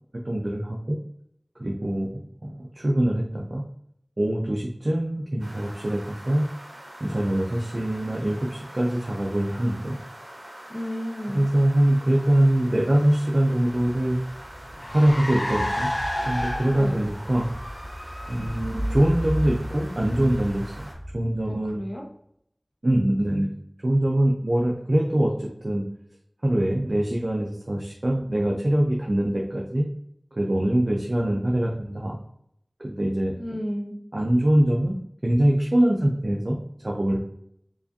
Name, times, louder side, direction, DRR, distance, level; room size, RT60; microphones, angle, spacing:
voice 1, 0.2-1.0 1.6-3.6 4.2-6.4 7.0-10.0 11.3-14.2 14.9-15.9 16.3-17.5 18.3-20.9 21.1-21.8 22.8-23.5 23.8-25.9 26.4-29.8 30.3-32.2 32.8-33.3 34.1-35.0 35.2-36.6 36.8-37.2, right 1 dB, 65° right, -1 dB, 0.5 m, -23 dB
sound 1, 5.4-20.9, right 1 dB, 80° right, 1.2 m, -44 dB
voice 2, 10.7-11.5 16.7-17.1 21.5-22.1 33.3-34.0, equal, 25° left, 1 dB, 0.9 m, -32 dB
Car, 13.7-21.5, equal, 70° left, 1.3 m, -31 dB
4.7 x 2.5 x 2.6 m, 0.71 s
wide cardioid pair, 40°, 0 cm